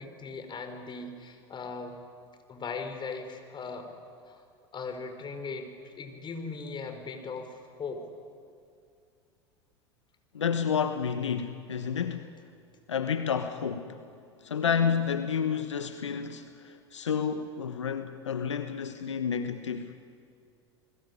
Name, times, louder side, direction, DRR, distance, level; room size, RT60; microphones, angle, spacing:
voice 1, 0.0-2.0 2.5-3.9 4.2-4.4 4.7-8.0, left 4 dB, 30° left, 6 dB, 4.9 m, -39 dB
voice 2, 10.3-12.3 12.9-14.0 14.4-19.9, left 7 dB, 85° left, 9 dB, 1.2 m, -30 dB
29.0 x 21.0 x 9.8 m, 2.3 s
hypercardioid pair, 80°, 15 cm